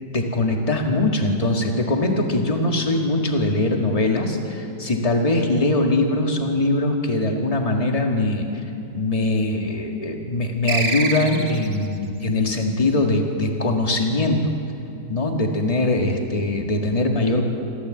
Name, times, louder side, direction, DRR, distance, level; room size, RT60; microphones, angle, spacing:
voice 1, 0.1-8.5 8.9-14.5 15.1-17.4, left 2 dB, 20° left, 2 dB, 1.8 m, -22 dB
sound 1, 10.7-11.9, right 3 dB, 35° right, 1.4 m, -25 dB
27.0 x 13.5 x 7.8 m, 2.7 s
omnidirectional pair, 1.9 m